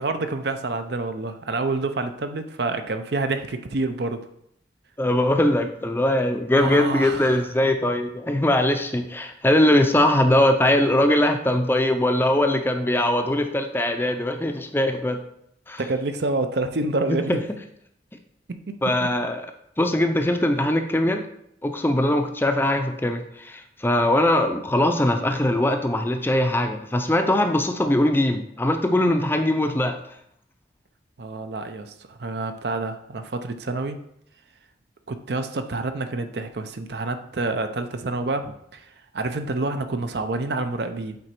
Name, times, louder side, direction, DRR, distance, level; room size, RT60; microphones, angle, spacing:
voice 1, 0.0-4.3 6.6-7.5 15.8-17.4 18.5-19.1 31.2-34.0 35.1-38.8 39.1-41.2, right 3 dB, 65° right, 8 dB, 0.6 m, -28 dB
voice 2, 5.0-15.2 15.7-15.8 17.1-17.4 18.8-19.5 19.8-21.2 21.6-30.0, left 1 dB, 10° left, 6 dB, 0.5 m, -21 dB
7.9 x 3.9 x 4.4 m, 0.73 s
head